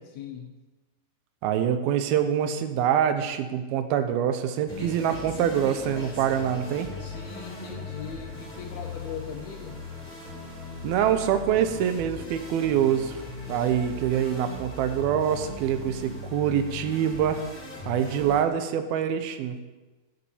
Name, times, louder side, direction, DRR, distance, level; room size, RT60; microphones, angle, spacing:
voice 1, 0.1-0.5 7.0-9.8, left 7 dB, 75° left, 2 dB, 1.6 m, -39 dB
voice 2, 1.4-6.9 10.8-13.2 13.5-17.4 17.9-19.6, right 9 dB, 90° right, 9 dB, 2.7 m, -25 dB
sound 1, 4.7-18.4, left 3 dB, 15° left, 2.2 m, -39 dB
13.5 x 7.0 x 7.2 m, 1.2 s
omnidirectional pair, 4.2 m